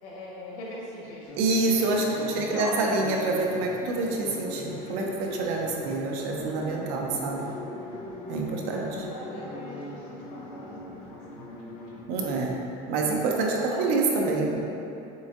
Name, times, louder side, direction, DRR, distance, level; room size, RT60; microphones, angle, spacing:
voice 1, 0.0-1.3 2.1-2.9 7.7-8.1 8.4-10.9 13.6-14.1, left 1 dB, 75° left, -5 dB, 1.3 m, -40 dB
sound 1, 1.3-12.0, left 1 dB, 45° left, 0.7 m, -40 dB
voice 2, 1.4-7.5 8.3-9.1 12.1-12.6 12.9-14.6, right 3 dB, 60° right, 0 dB, 0.6 m, -27 dB
6.7 x 2.6 x 2.5 m, 2.9 s
cardioid pair, 175°, 19 cm